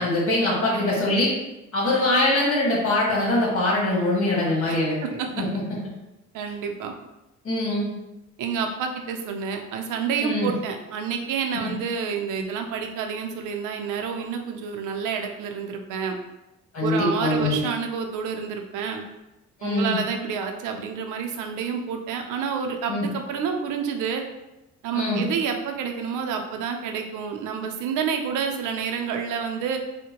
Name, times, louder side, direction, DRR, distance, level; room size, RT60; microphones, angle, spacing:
voice 1, 0.0-1.3 1.7-5.0 5.4-5.5 7.4-7.9 10.2-10.5 11.5-11.7 16.7-17.6 19.6-20.0 22.9-23.1 24.9-25.2, left 1 dB, 45° left, -4 dB, 1.5 m, -23 dB
voice 2, 6.3-6.9 8.4-16.2 16.8-19.0 19.6-24.2 24.8-29.8, right 6 dB, 85° right, 4 dB, 0.5 m, -29 dB
3.6 x 2.1 x 2.9 m, 0.96 s
cardioid pair, 90°, 30 cm